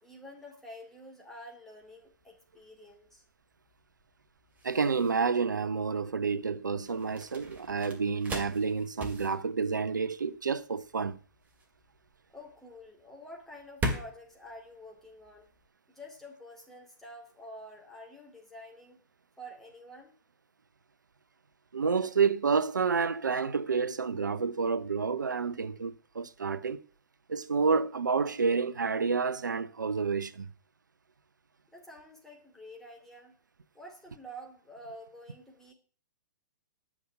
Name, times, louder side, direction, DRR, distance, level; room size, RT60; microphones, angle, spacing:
voice 1, 0.0-3.2 12.3-15.5 15.9-19.0 19.4-20.1 31.7-33.4 33.7-35.7, equal, 5° left, 2.7 m, -48 dB
sound 1, 1.8-15.7, equal, 15° right, 2.5 m, -41 dB
voice 2, 4.6-11.2 21.7-26.8 27.3-30.5, right 5 dB, 70° right, 0.8 m, -29 dB
11.5 x 6.1 x 7.6 m
figure-of-eight pair, 115°, 10 cm